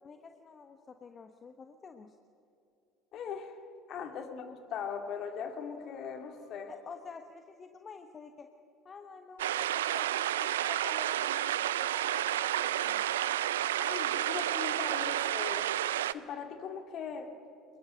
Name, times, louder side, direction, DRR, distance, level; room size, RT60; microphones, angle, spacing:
voice 1, 0.0-2.1 6.7-8.5 8.8-13.0, left 5 dB, 35° left, 7 dB, 1.3 m, -49 dB
voice 2, 3.1-3.6 3.9-6.7 13.8-15.7 16.1-17.3, left 6 dB, 55° left, 6 dB, 2.6 m, -39 dB
sound 1, 9.4-16.1, right 12 dB, 80° right, 0.5 m, -31 dB
22.5 x 21.5 x 7.8 m, 2.7 s
hypercardioid pair, 70°, 0 cm